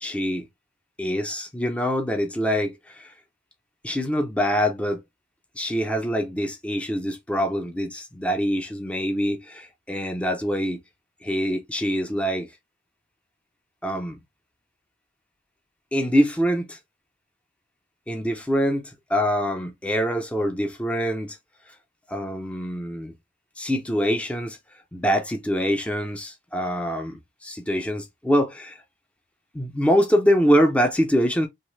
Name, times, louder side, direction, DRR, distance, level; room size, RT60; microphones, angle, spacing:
voice 1, 0.0-0.5 1.0-3.1 3.8-5.0 5.6-10.8 11.2-12.5 13.8-14.2 15.9-16.8 18.1-21.4 22.1-23.1 23.6-24.6 24.9-28.8 29.5-31.5, equal, 5° left, 0.4 m, -24 dB
3.1 x 2.0 x 3.0 m
head